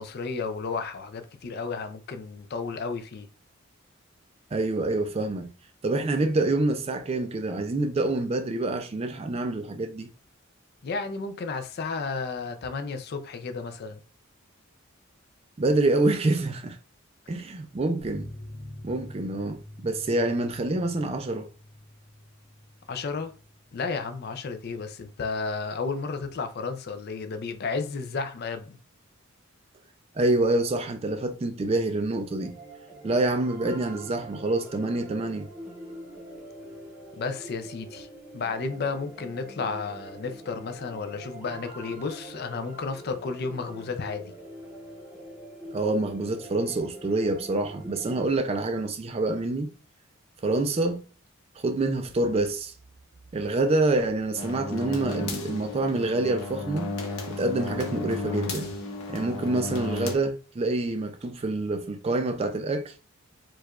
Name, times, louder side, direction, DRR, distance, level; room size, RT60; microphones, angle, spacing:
voice 1, 0.0-3.3 10.8-14.0 22.9-23.3 23.7-28.8 37.2-38.1 38.3-44.3, left 4 dB, 45° left, 0.4 m, -32 dB
voice 2, 4.5-5.5 5.8-10.1 15.6-16.8 17.3-18.3 18.8-21.5 30.1-32.5 33.0-35.5 45.7-49.7 50.4-51.0 51.6-52.7 53.3-56.9 57.3-58.7 59.1-62.9, right 2 dB, 30° right, 0.3 m, -26 dB
sound 1, 18.0-25.1 25.4-25.5 25.8-25.9, left 1 dB, 30° left, 0.9 m, -46 dB
sound 2, 32.4-48.4, right 1 dB, 5° right, 0.7 m, -44 dB
sound 3, 54.4-60.1, left 2 dB, 85° left, 0.8 m, -33 dB
4.6 x 2.3 x 2.3 m
head